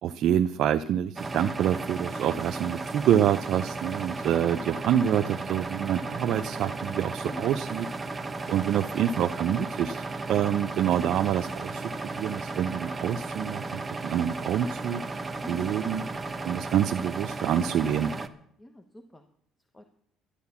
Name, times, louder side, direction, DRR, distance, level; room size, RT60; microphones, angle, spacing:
voice 1, 0.0-7.9 8.5-15.0 15.5-16.0 16.4-18.1, right 10 dB, 65° right, 7 dB, 0.6 m, -27 dB
sound 1, 1.2-18.3, right 3 dB, 20° right, 1.0 m, -35 dB
voice 2, 18.6-19.3 19.7-19.9, left 1 dB, 15° left, 6 dB, 1.2 m, -44 dB
11.5 x 11.5 x 7.1 m, 0.67 s
cardioid pair, 115°, 0 cm